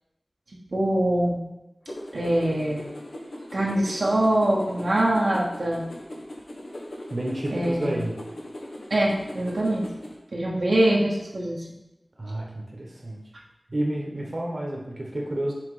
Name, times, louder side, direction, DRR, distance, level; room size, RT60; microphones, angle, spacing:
voice 1, 0.7-1.4 2.1-2.9 3.5-5.8 7.5-8.0 8.9-9.8 10.3-11.6, right 1 dB, 80° right, -4 dB, 1.2 m, -23 dB
sound 1, 1.9-10.2, left 1 dB, 85° left, 1.1 m, -40 dB
voice 2, 7.1-8.2 12.2-13.3 13.7-15.5, right 1 dB, 55° right, -1 dB, 1.2 m, -30 dB
5.9 x 3.6 x 4.9 m, 0.94 s
wide cardioid pair, 45°, 0 cm